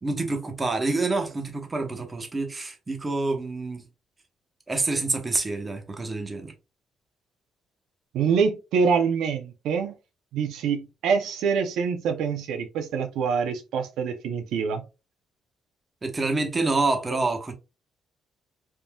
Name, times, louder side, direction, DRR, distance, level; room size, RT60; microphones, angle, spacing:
voice 1, 0.0-3.8 4.7-6.5 16.0-17.5, right 3 dB, 25° right, 0.9 m, -27 dB
voice 2, 8.1-10.0 10.3-14.8, right 6 dB, 85° right, 0.5 m, -25 dB
3.5 x 2.6 x 2.2 m
cardioid pair, 90°, 0 cm